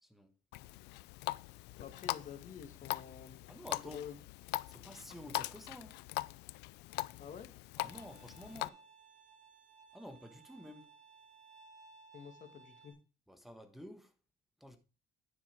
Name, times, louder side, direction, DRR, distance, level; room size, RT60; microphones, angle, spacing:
voice 1, 0.0-0.4 3.5-4.0 4.7-6.0 7.8-8.8 9.9-10.9 13.3-14.1 14.6-14.8, equal, ahead, 1.3 m, -51 dB
Water tap faucet, 0.5-8.7, left 20 dB, 90° left, 0.4 m, -42 dB
voice 2, 1.8-3.4 3.8-4.2 7.2-7.5 12.1-12.9, left 7 dB, 50° left, 1.8 m, -48 dB
Bowed string instrument, 7.9-12.9, right 4 dB, 25° right, 5.3 m, -60 dB
9.9 x 5.6 x 4.5 m
cardioid pair, 110°, 17 cm